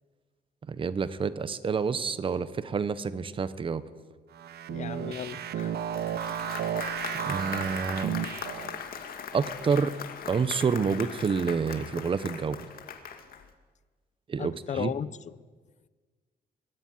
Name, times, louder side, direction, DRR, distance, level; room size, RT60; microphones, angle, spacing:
voice 1, 0.7-3.8 7.2-8.1 9.3-9.9 10.3-12.6 14.3-14.9, right 5 dB, 30° right, 1.1 m, -28 dB
sound 1, 4.3-8.8, right 9 dB, 70° right, 1.1 m, -33 dB
voice 2, 4.7-5.7 14.4-15.1, left 9 dB, 45° left, 0.8 m, -35 dB
Applause, 5.6-13.5, left 7 dB, 60° left, 2.3 m, -40 dB
22.5 x 21.0 x 9.7 m
wide cardioid pair, 170°, 17 cm